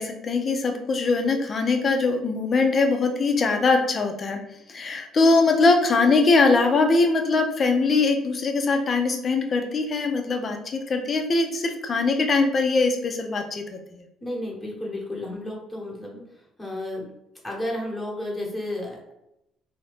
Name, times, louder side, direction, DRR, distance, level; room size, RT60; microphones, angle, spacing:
voice 1, 0.0-4.4 4.7-14.1, left 3 dB, 40° left, 4 dB, 0.6 m, -22 dB
voice 2, 14.2-16.2 16.6-17.1 17.4-19.1, left 1 dB, 10° left, -3 dB, 1.2 m, -32 dB
2.8 x 2.7 x 3.5 m, 0.81 s
cardioid pair, 100°, 0 cm